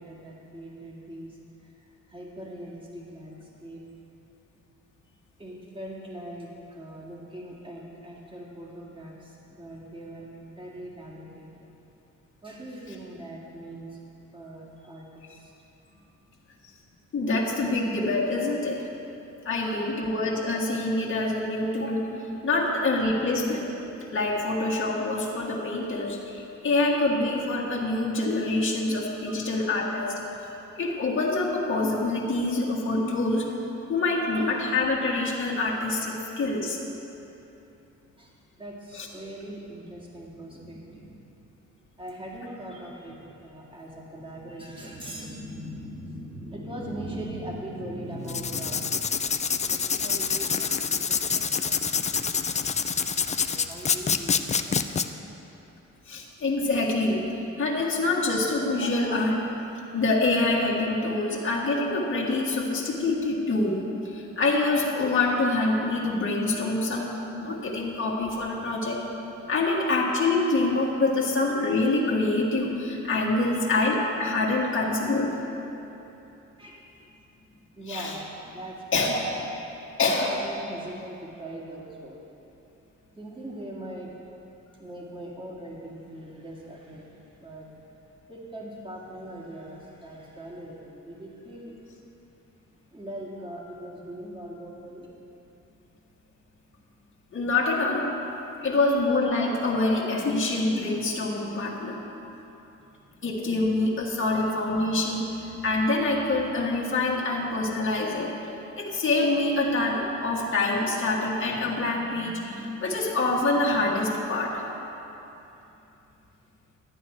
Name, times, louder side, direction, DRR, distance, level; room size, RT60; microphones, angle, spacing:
voice 1, 0.0-1.7 2.1-3.8 5.4-11.7 12.4-14.0 14.3-15.5 29.3-29.4 38.2-41.3 42.0-52.9 53.3-55.1 56.4-56.5 69.8-69.9 73.4-73.6 74.5-74.7 76.6-77.1 77.8-79.0 79.4-79.5 80.0-82.2 83.2-84.1 84.8-87.7 88.3-91.8 92.9-95.1, right 1 dB, 15° right, -3 dB, 2.1 m, -41 dB
voice 2, 17.1-18.8 19.4-22.1 22.4-23.7 24.1-30.2 30.8-33.5 33.9-36.8 38.9-39.1 49.8-49.9 56.1-57.2 57.6-59.4 59.9-67.1 67.4-69.0 69.5-75.3 77.9-78.1 78.9-79.2 80.0-80.3 97.3-98.0 98.6-102.0 103.2-108.3 108.8-114.6, left 2 dB, 40° left, -3 dB, 1.6 m, -26 dB
Writing, 48.2-55.1, left 6 dB, 25° left, 0.4 m, -26 dB
12.0 x 9.0 x 4.5 m, 3.0 s
cardioid pair, 90°, 30 cm